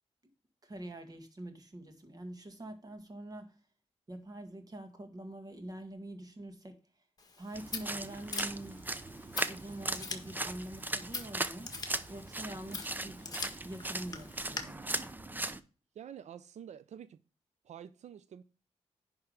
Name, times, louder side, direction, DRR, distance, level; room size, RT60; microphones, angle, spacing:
voice 1, 0.6-3.5 4.1-6.7 7.4-8.8 9.5-11.7 12.1-14.8, right 1 dB, 35° right, 1.9 m, -45 dB
Scissors, 7.2-14.6, left 4 dB, 35° left, 1.7 m, -44 dB
Footsteps Muddy A, 7.5-15.6, right 2 dB, 15° right, 0.6 m, -38 dB
voice 2, 15.9-17.2 17.6-18.4, right 9 dB, 90° right, 0.5 m, -48 dB
10.5 x 3.6 x 6.5 m
wide cardioid pair, 100°, 11 cm